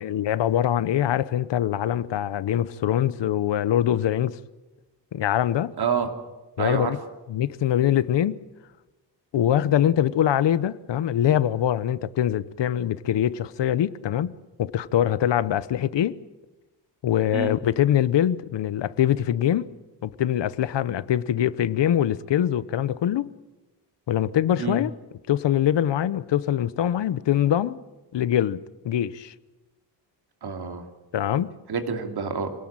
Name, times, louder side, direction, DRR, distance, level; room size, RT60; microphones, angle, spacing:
voice 1, 0.0-4.4 5.1-5.7 6.6-7.0 7.3-8.4 9.3-16.2 17.0-19.7 20.0-23.3 24.1-24.9 25.3-27.8 28.1-28.6 28.8-29.3 31.1-31.6, left 11 dB, 75° left, 0.9 m, -23 dB
voice 2, 5.8-6.1 6.6-6.9 17.3-17.5 24.6-24.8 30.4-30.8 31.7-32.5, right 6 dB, 60° right, 2.7 m, -27 dB
25.5 x 18.0 x 8.8 m
wide cardioid pair, 135°, 43 cm